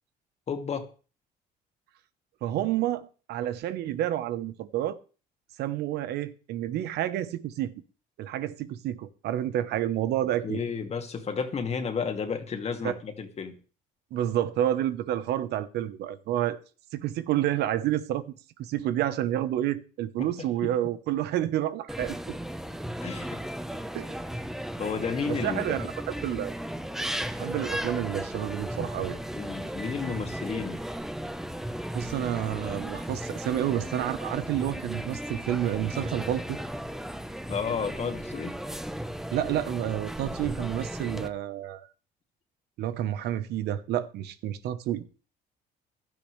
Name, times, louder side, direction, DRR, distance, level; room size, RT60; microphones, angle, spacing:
voice 1, 0.5-0.9 10.4-13.6 20.2-20.3 20.6-20.7 23.0-23.4 24.8-25.6 29.3-30.8 37.5-38.6, left 6 dB, 40° left, 2.2 m, -32 dB
voice 2, 2.4-5.0 5.6-7.7 8.2-10.6 12.8-12.9 14.1-16.6 16.9-18.2 18.6-22.4 23.9-24.2 25.3-26.5 27.4-29.2 31.9-36.6 39.3-41.9 42.8-45.3, right 12 dB, 80° right, 1.0 m, -29 dB
sound 1, 21.9-41.3, equal, ahead, 0.9 m, -35 dB
15.5 x 12.0 x 3.3 m
cardioid pair, 110°, 17 cm